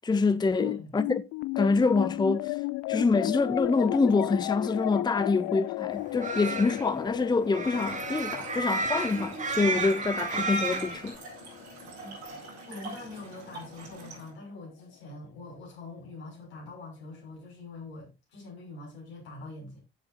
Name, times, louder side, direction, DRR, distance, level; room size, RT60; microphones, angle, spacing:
voice 1, 0.0-1.2 1.6-2.6 2.9-11.1, left 4 dB, 15° left, 0.7 m, -26 dB
voice 2, 0.5-1.0 11.6-19.8, left 3 dB, 75° left, 6.0 m, -44 dB
sound 1, 0.6-13.2, left 21 dB, 50° left, 0.4 m, -35 dB
sound 2, 6.0-11.1, right 3 dB, 25° right, 2.1 m, -32 dB
Trickle dribble / Fill (with liquid), 7.7-14.3, right 3 dB, 80° right, 5.9 m, -44 dB
14.5 x 7.5 x 2.6 m
figure-of-eight pair, 50°, 32 cm